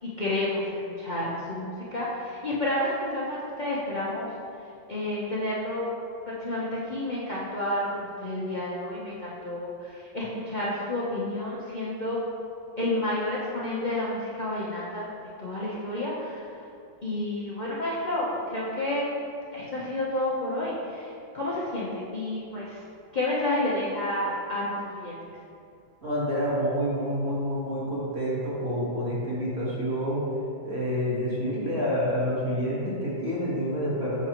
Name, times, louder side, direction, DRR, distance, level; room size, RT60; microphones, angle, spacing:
voice 1, 0.0-4.3 4.9-6.0 6.3-12.2 12.8-15.1 15.4-16.4 17.0-19.1 19.5-21.1 21.3-22.8 23.1-25.2, left 1 dB, 80° left, -8 dB, 0.4 m, -30 dB
voice 2, 26.0-30.3 30.6-34.3, equal, 35° right, -8 dB, 1.8 m, -28 dB
7.0 x 5.9 x 3.0 m, 2.5 s
omnidirectional pair, 2.1 m